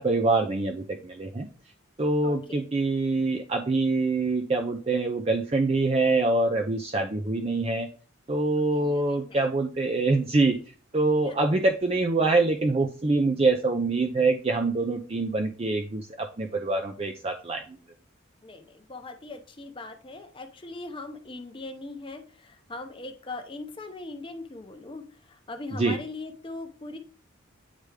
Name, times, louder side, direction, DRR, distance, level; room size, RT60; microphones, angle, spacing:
voice 1, 0.0-1.5 2.0-7.9 8.3-10.6 10.9-17.6 25.7-26.0, right 3 dB, 30° right, 3 dB, 0.5 m, -25 dB
voice 2, 2.2-2.6 8.7-9.4 11.2-11.3 18.4-25.0 25.3-27.0, left 2 dB, 25° left, 6 dB, 0.7 m, -40 dB
9.0 x 3.4 x 3.3 m, 0.38 s
head